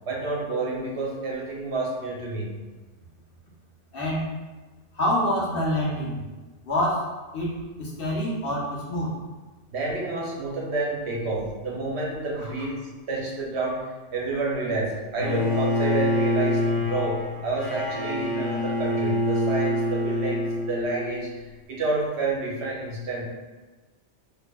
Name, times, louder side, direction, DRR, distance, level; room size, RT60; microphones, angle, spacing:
voice 1, 0.1-2.5 9.7-23.2, right 3 dB, 65° right, -3 dB, 1.0 m, -29 dB
voice 2, 3.9-4.4 4.9-6.2 6.6-7.1 7.3-9.2 12.4-12.5, equal, 55° left, -5 dB, 0.9 m, -26 dB
Bowed string instrument, 15.2-21.3, left 1 dB, 85° left, 1.2 m, -26 dB
4.5 x 2.7 x 2.2 m, 1.3 s
omnidirectional pair, 1.2 m